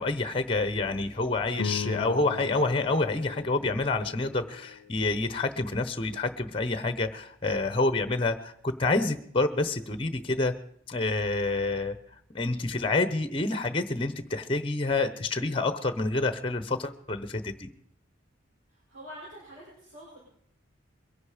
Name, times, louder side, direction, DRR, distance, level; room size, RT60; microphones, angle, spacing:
voice 1, 0.0-10.5 10.9-11.9 12.3-17.7, left 3 dB, 25° left, 12 dB, 0.8 m, -28 dB
sound 1, 1.5-6.1, left 5 dB, 80° left, 0.6 m, -39 dB
voice 2, 18.7-20.2, equal, 80° right, -6 dB, 5.7 m, -46 dB
22.5 x 10.5 x 5.0 m, 0.67 s
head